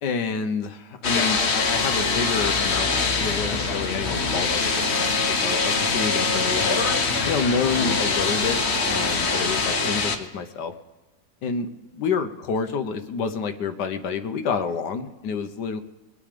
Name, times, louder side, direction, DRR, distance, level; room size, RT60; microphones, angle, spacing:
voice 1, 0.0-2.9 3.2-6.8 7.3-8.6 8.9-10.7 11.4-15.8, left 5 dB, 90° left, 9 dB, 1.5 m, -28 dB
sound 1, 1.0-10.1, left 4 dB, 45° left, 1.3 m, -23 dB
22.5 x 8.8 x 5.1 m, 1.2 s
omnidirectional pair, 1.8 m